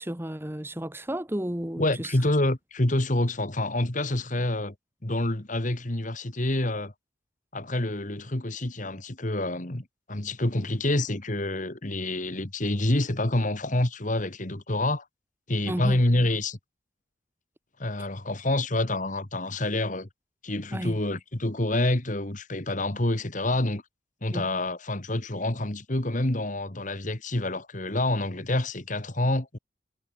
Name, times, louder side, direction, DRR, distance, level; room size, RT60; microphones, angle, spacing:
voice 1, 0.0-2.1 15.7-16.0 20.7-21.0 24.3-24.5, right 1 dB, 10° right, 1.2 m, -32 dB
voice 2, 1.8-4.7 5.0-6.9 7.5-15.1 15.5-16.6 17.8-20.1 20.4-23.8 24.2-29.6, left 1 dB, 40° left, 1.8 m, -27 dB
head